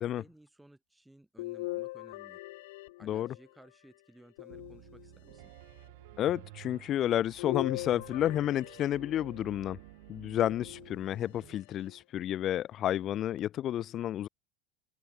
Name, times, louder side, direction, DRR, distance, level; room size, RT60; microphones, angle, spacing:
voice 1, 0.2-2.4 3.0-5.5, right 1 dB, 5° right, 7.2 m, -58 dB
sound 1, 1.4-3.6 4.4-5.4 7.4-9.4 10.4-11.2 11.9-12.0 13.4-13.5, left 20 dB, 75° left, 3.1 m, -41 dB
voice 2, 3.0-3.3 6.2-9.8 10.1-14.3, left 12 dB, 35° left, 1.5 m, -31 dB
Piano, 4.5-11.5, right 24 dB, 70° right, 6.9 m, -52 dB
supercardioid pair, 150°, 0 cm